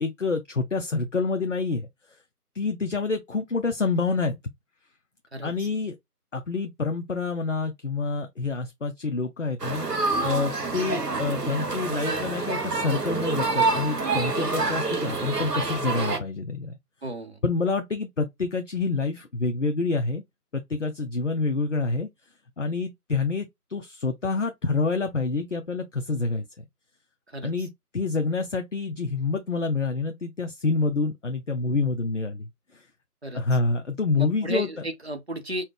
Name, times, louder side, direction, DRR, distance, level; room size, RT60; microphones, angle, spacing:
voice 1, 0.0-1.9 2.5-4.4 5.4-6.0 6.3-9.9 10.2-16.7 17.4-20.2 20.5-22.1 22.6-26.6 27.4-32.9 33.3-34.7, left 4 dB, 55° left, 0.5 m, -27 dB
voice 2, 5.3-5.7 17.0-17.4 27.3-27.5 33.2-33.4 34.2-35.6, equal, 45° right, 0.7 m, -33 dB
sound 1, 9.6-16.2, right 3 dB, 80° right, 1.1 m, -27 dB
4.2 x 2.1 x 3.2 m
figure-of-eight pair, 160°, 47 cm